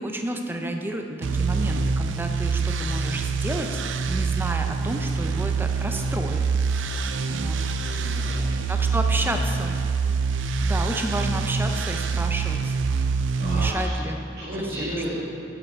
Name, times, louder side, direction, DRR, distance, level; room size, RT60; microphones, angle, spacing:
voice 1, 0.0-3.8 4.1-6.4 7.3-7.6 8.7-9.8 10.6-12.7 13.4-14.2 14.8-15.0, right 1 dB, 10° right, 4 dB, 0.4 m, -31 dB
sound 1, 1.2-13.7, right 4 dB, 80° right, 0.4 m, -25 dB
voice 2, 7.8-8.4 13.4-14.0 14.4-15.1, right 1 dB, 55° right, -11 dB, 1.9 m, -34 dB
8.6 x 5.6 x 4.3 m, 2.7 s
head